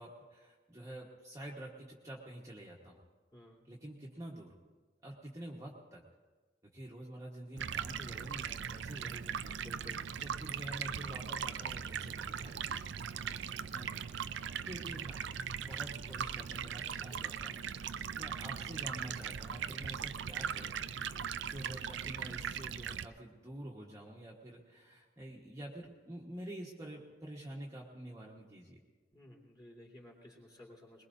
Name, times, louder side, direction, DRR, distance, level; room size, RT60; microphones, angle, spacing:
voice 1, 0.0-3.0 3.7-4.5 5.0-6.0 6.6-9.8 10.2-13.0 13.6-13.9 14.6-15.2 15.5-21.1 21.5-28.8, right 1 dB, 15° right, -3 dB, 1.4 m, -48 dB
Stream, 7.6-23.0, right 7 dB, 65° right, 0.5 m, -39 dB
voice 2, 9.6-10.1 29.1-31.1, left 1 dB, 20° left, -4 dB, 3.2 m, -55 dB
22.0 x 21.0 x 2.7 m, 1.3 s
head